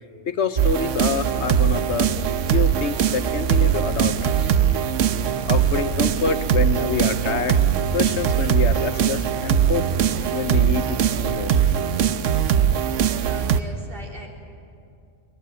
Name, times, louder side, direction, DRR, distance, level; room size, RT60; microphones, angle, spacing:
voice 1, 0.3-2.1 2.5-4.6 5.5-7.6 7.9-9.9 10.3-11.6, left 5 dB, 65° left, 10 dB, 1.2 m, -26 dB
sound 1, 0.6-13.6, right 8 dB, 75° right, 1.1 m, -21 dB
voice 2, 13.2-14.3, right 1 dB, 45° right, -1 dB, 3.9 m, -39 dB
22.0 x 21.0 x 9.6 m, 2.5 s
omnidirectional pair, 1.3 m